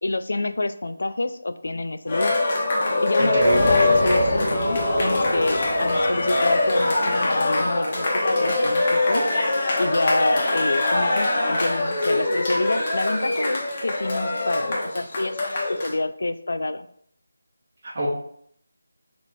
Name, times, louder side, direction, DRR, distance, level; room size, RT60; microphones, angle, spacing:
voice 1, 0.0-2.4 3.0-9.2 9.8-16.9, left 2 dB, 70° left, 11 dB, 0.4 m, -27 dB
Cheering, 2.1-15.9, left 2 dB, 30° left, 0.8 m, -23 dB
voice 2, 3.2-3.7 17.8-18.1, right 1 dB, 35° right, -6 dB, 1.3 m, -25 dB
sound 1, 3.3-7.7, equal, 5° right, 1.7 m, -32 dB
6.0 x 2.9 x 2.7 m, 0.66 s
figure-of-eight pair, 170°, 0 cm